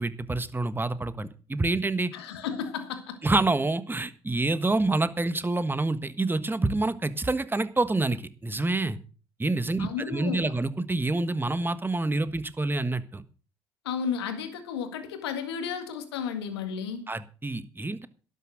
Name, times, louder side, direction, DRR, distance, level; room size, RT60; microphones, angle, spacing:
voice 1, 0.0-2.1 3.2-9.0 9.4-13.2 17.1-18.1, right 2 dB, 15° right, 1.4 m, -27 dB
voice 2, 2.1-3.2 9.8-10.5 13.8-17.1, left 7 dB, 85° left, 1.9 m, -33 dB
12.0 x 9.6 x 6.5 m
hypercardioid pair, 55°, 13 cm